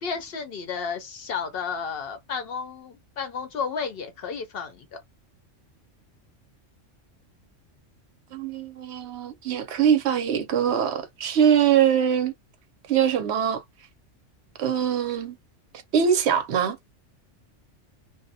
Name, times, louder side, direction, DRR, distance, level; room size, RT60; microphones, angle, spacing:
voice 1, 0.0-4.9, left 6 dB, 60° left, 0.7 m, -32 dB
voice 2, 8.3-12.3 12.9-13.6 14.6-15.3 15.9-16.8, right 8 dB, 65° right, 0.8 m, -22 dB
2.4 x 2.0 x 2.6 m
omnidirectional pair, 1.3 m